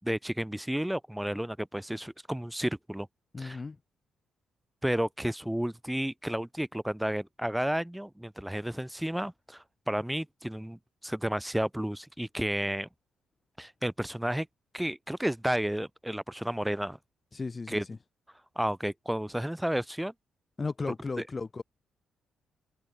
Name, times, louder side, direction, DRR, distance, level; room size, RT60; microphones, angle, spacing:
voice 1, 0.0-3.1 3.4-3.6 4.8-12.9 13.6-14.5 14.7-17.0 17.7-17.8 18.6-20.1, right 1 dB, 5° right, 6.3 m, -32 dB
voice 2, 3.3-3.8 17.3-18.0 20.6-21.6, left 4 dB, 30° left, 3.8 m, -35 dB
cardioid pair, 85°, 0 cm